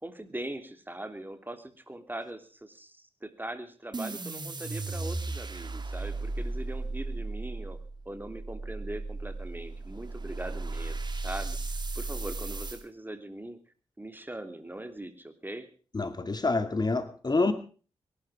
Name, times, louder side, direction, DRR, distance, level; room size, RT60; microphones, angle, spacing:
voice 1, 0.0-7.8 8.0-11.0 11.2-11.6 11.9-13.6 14.0-15.7, right 1 dB, 20° right, 9 dB, 3.1 m, -41 dB
sound 1, 3.9-12.8, right 3 dB, 45° right, 2.5 m, -36 dB
voice 2, 15.9-17.5, left 3 dB, 40° left, 10 dB, 2.2 m, -27 dB
23.0 x 12.0 x 5.0 m, 0.39 s
cardioid pair, 45°, 11 cm